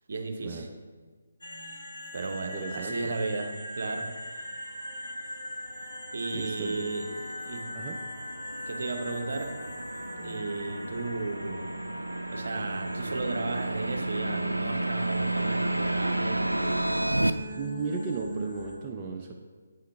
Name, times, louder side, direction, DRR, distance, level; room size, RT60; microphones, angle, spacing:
voice 1, 0.1-0.7 2.1-4.1 6.1-7.7 8.7-9.6 10.2-11.7 12.3-16.5, right 3 dB, 55° right, 4 dB, 0.7 m, -34 dB
sound 1, 1.4-18.8, equal, 75° left, 1.2 m, -41 dB
voice 2, 2.5-3.1 6.3-6.9 7.7-8.0 17.6-19.3, right 4 dB, 20° right, 0 dB, 0.4 m, -35 dB
sound 2, 5.8-17.3, right 1 dB, 85° right, 0.3 m, -32 dB
8.2 x 3.8 x 3.4 m, 1.4 s
figure-of-eight pair, 145°, 0 cm